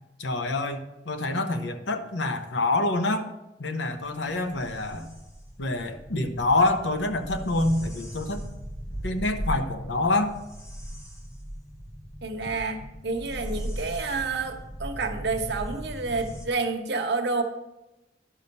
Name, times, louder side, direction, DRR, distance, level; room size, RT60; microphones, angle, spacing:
voice 1, 0.2-3.3 3.6-5.1 5.6-8.4 9.0-10.3, left 2 dB, 80° left, 7 dB, 0.9 m, -26 dB
sound 1, 4.1-16.5, equal, 15° left, 1.1 m, -38 dB
voice 2, 12.2-17.4, right 3 dB, 65° right, 3 dB, 1.2 m, -29 dB
11.5 x 5.6 x 5.4 m, 0.97 s
head